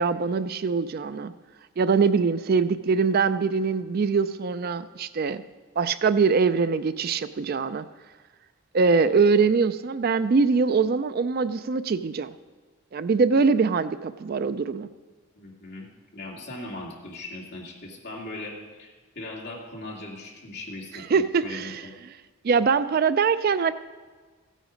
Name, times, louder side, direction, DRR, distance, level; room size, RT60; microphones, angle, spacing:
voice 1, 0.0-1.3 1.8-5.4 5.8-7.8 8.7-12.3 12.9-14.9 21.1-21.8 22.4-23.7, right 5 dB, 45° right, 13 dB, 0.4 m, -23 dB
voice 2, 15.3-15.9 16.1-21.0 21.4-21.9, left 2 dB, 50° left, -3 dB, 2.6 m, -39 dB
15.5 x 9.1 x 5.2 m, 1.4 s
head